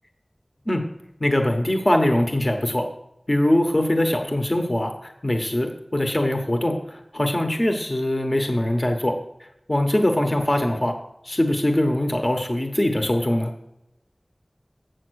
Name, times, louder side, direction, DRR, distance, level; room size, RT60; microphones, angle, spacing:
voice 1, 1.2-2.9 3.3-9.1 9.7-10.9 11.2-13.5, left 1 dB, 40° left, 4 dB, 1.1 m, -22 dB
7.8 x 7.5 x 6.3 m, 0.82 s
wide cardioid pair, 45°, 0 cm